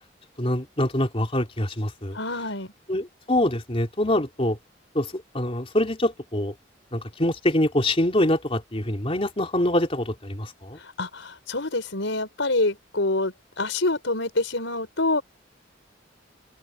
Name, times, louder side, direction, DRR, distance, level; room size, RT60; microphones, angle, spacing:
voice 1, 0.4-2.2 2.9-4.6 5.0-6.5 6.9-10.8, left 1 dB, 30° left, 3.5 m, -25 dB
voice 2, 2.1-2.7 10.8-15.2, left 2 dB, 90° left, 5.0 m, -26 dB
open air
head